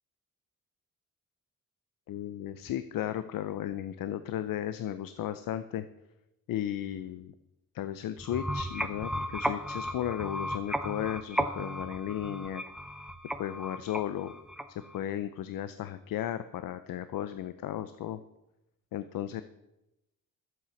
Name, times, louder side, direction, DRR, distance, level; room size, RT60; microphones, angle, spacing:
voice 1, 2.1-5.8 6.5-7.3 7.7-12.6 13.4-14.3 14.7-18.2 18.9-19.4, left 11 dB, 80° left, 12 dB, 0.7 m, -35 dB
sound 1, 8.2-15.0, equal, ahead, 0.6 m, -35 dB
12.0 x 7.8 x 7.0 m, 0.91 s
wide cardioid pair, 150°, 33 cm